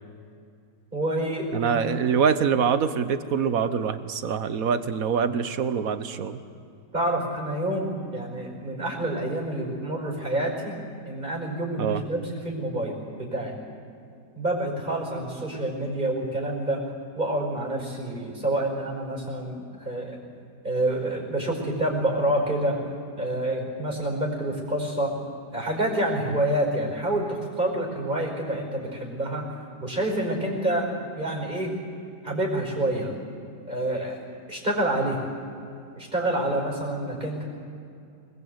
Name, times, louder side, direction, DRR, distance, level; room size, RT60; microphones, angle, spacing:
voice 1, 0.9-2.0 6.9-13.6 14.3-16.8 17.2-20.2 20.6-22.8 23.1-25.2 25.5-29.5 29.8-31.8 32.2-33.2 33.7-34.2 34.5-35.2 36.0-37.4, right 1 dB, 25° right, 0 dB, 5.3 m, -28 dB
voice 2, 1.5-6.4 11.8-12.0, right 6 dB, 60° right, 11 dB, 1.3 m, -24 dB
24.0 x 20.5 x 8.1 m, 2.5 s
omnidirectional pair, 1.8 m